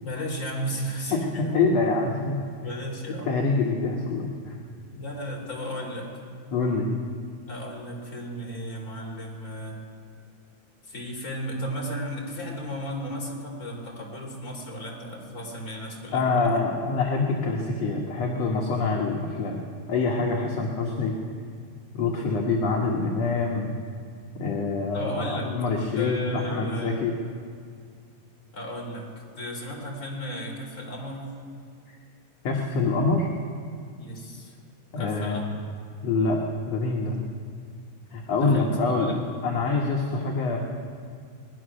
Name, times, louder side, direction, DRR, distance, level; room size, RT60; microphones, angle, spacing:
voice 1, 0.0-1.6 2.6-3.3 4.9-6.1 7.5-9.8 10.8-16.6 24.9-25.5 25.9-27.0 28.5-29.1 29.4-31.2 33.9-34.5 35.0-35.5 38.4-39.2, equal, 20° left, -2 dB, 3.4 m, -34 dB
voice 2, 1.1-2.4 3.3-4.6 6.5-6.9 16.1-19.6 19.9-21.2 21.9-23.7 24.4-27.1 32.4-33.3 34.9-35.4 36.0-36.4 36.7-37.2 38.1-39.1 39.4-40.6, left 3 dB, 60° left, -1 dB, 2.0 m, -25 dB
19.5 x 11.5 x 6.3 m, 2.2 s
omnidirectional pair, 3.9 m